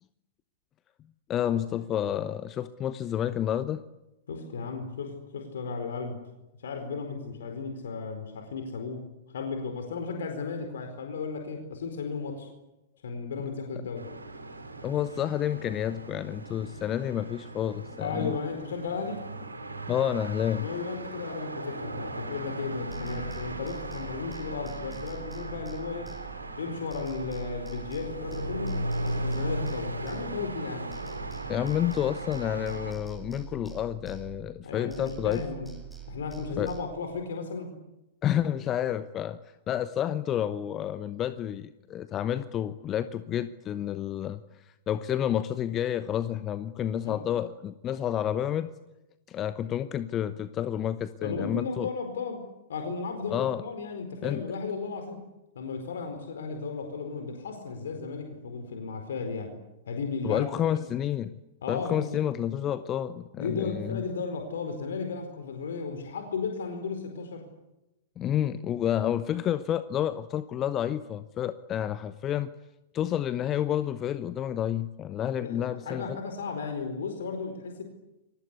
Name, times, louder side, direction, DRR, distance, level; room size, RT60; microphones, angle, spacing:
voice 1, 1.3-3.8 14.8-18.4 19.9-20.7 31.5-35.4 36.6-36.7 38.2-39.4 39.7-48.7 49.3-51.9 53.3-53.6 54.2-54.4 60.2-61.4 61.7-64.0 68.2-72.5 72.9-76.2, left 10 dB, 25° left, 13 dB, 1.0 m, -30 dB
voice 2, 4.3-6.2 6.6-9.0 9.3-12.5 13.0-14.1 18.0-19.3 20.6-26.1 26.6-30.9 34.6-35.7 36.1-37.8 47.0-47.2 51.2-55.2 55.5-59.6 59.9-60.8 61.6-62.1 63.4-67.5 75.2-77.8, left 4 dB, 60° left, 6 dB, 4.4 m, -35 dB
sound 1, 13.9-32.9, right 1 dB, 80° right, 4.5 m, -37 dB
sound 2, 22.9-26.7 26.9-30.6 30.9-34.6 34.9-36.8, right 10 dB, ahead, 6.8 m, -45 dB
29.5 x 23.5 x 8.4 m, 0.97 s
figure-of-eight pair, 100°, 0 cm